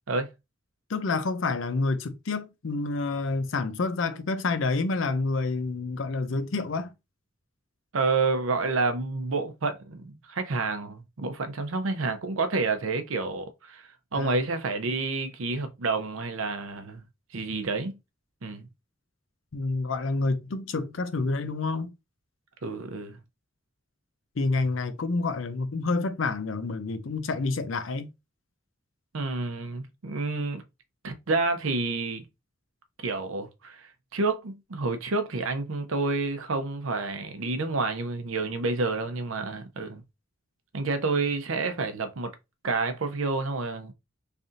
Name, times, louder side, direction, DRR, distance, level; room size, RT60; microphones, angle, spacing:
voice 1, 0.9-6.9 14.1-14.3 19.5-21.9 24.4-28.1, left 3 dB, 70° left, 0.5 m, -28 dB
voice 2, 7.9-17.0 17.3-18.0 18.4-18.7 22.6-23.2 29.1-30.6 31.0-32.3 33.0-40.0 40.7-42.3 42.6-43.9, right 3 dB, 80° right, 0.7 m, -29 dB
3.3 x 2.7 x 3.7 m
head